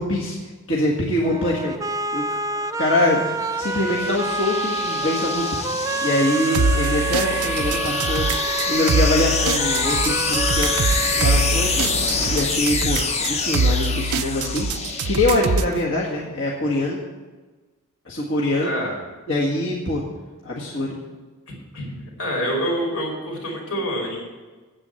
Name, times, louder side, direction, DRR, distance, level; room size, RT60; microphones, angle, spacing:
voice 1, 0.0-1.8 2.1-2.3 2.8-3.3 3.6-5.5 6.0-10.9 11.2-11.9 12.3-14.7 15.0-17.0 18.0-18.7 19.3-20.0 20.4-21.0, left 2 dB, 55° left, -5 dB, 1.8 m, -24 dB
sound 1, 1.2-12.2, right 3 dB, 15° right, 0.3 m, -28 dB
sound 2, 2.3-15.7, left 4 dB, 30° left, 0.8 m, -26 dB
sound 3, 6.5-15.8, right 3 dB, 80° right, 0.5 m, -24 dB
voice 2, 18.6-18.9 21.7-24.2, equal, 80° left, -1 dB, 4.9 m, -26 dB
9.8 x 8.3 x 9.0 m, 1.3 s
head